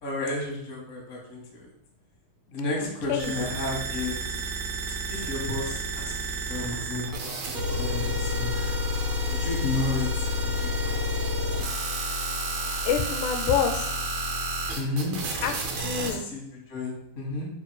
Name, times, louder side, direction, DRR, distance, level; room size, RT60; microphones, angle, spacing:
voice 1, 0.0-1.7 2.5-4.2 5.1-6.1 6.4-8.6 9.3-11.1 12.4-12.5 14.7-15.1 16.0-17.5, left 2 dB, 65° left, -3 dB, 0.7 m, -32 dB
voice 2, 2.8-3.5 12.9-14.0 15.4-16.2, left 7 dB, 85° left, 7 dB, 2.0 m, -28 dB
sound 1, 3.2-16.1, equal, 70° right, 1.6 m, -30 dB
sound 2, 6.5-13.4, right 1 dB, 55° right, 0.9 m, -49 dB
4.6 x 2.5 x 4.6 m, 0.75 s
omnidirectional pair, 3.5 m